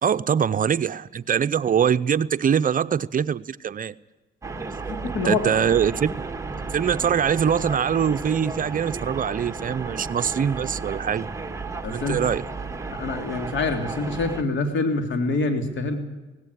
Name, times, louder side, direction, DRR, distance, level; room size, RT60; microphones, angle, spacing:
voice 1, 0.0-3.9 5.2-6.1 6.7-11.3 11.9-12.5, right 8 dB, 45° right, 13 dB, 0.7 m, -23 dB
sound 1, 4.4-14.4, right 4 dB, 15° right, 1.6 m, -33 dB
voice 2, 4.9-5.4 11.8-12.2 12.9-16.0, left 3 dB, 70° left, 6 dB, 3.4 m, -26 dB
17.5 x 17.0 x 9.9 m, 1.2 s
cardioid pair, 90°, 20 cm